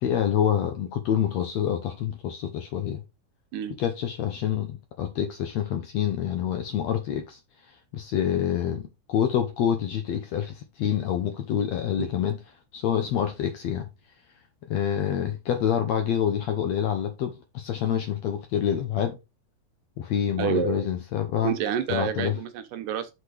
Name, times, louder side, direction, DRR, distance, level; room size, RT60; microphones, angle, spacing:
voice 1, 0.0-3.0 3.8-7.4 7.7-12.4 12.7-13.9 14.7-19.2 20.0-21.5 21.9-22.4, left 9 dB, 70° left, 1.7 m, -27 dB
voice 2, 20.4-20.8 21.4-23.1, right 8 dB, 75° right, 2.3 m, -28 dB
6.1 x 5.1 x 5.0 m
omnidirectional pair, 4.0 m